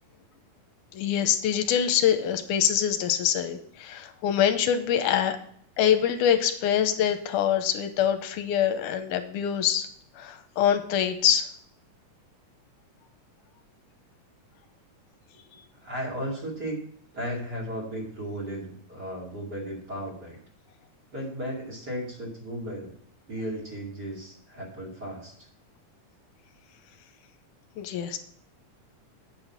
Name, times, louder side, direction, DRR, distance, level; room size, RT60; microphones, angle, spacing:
voice 1, 0.9-5.4 5.8-9.9 10.2-11.5 27.8-28.2, left 9 dB, 85° left, 9 dB, 2.2 m, -24 dB
voice 2, 15.8-16.8 17.1-20.4 21.1-22.9 23.3-25.3, equal, 35° right, -2 dB, 2.5 m, -35 dB
8.4 x 5.8 x 5.7 m, 0.64 s
omnidirectional pair, 3.7 m